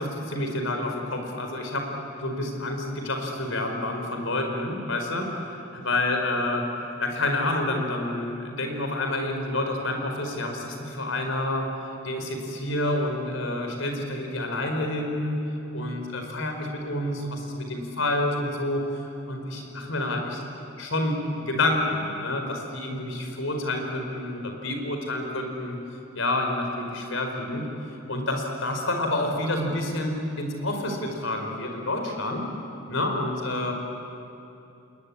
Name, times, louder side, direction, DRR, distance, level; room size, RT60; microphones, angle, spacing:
voice 1, 0.0-1.9 2.2-6.7 7.0-11.7 12.0-15.4 15.7-18.8 19.3-20.4 20.7-25.8 26.1-27.6 28.1-32.5 32.9-33.7, left 1 dB, 80° left, 3 dB, 4.8 m, -28 dB
28.5 x 21.0 x 9.9 m, 2.8 s
head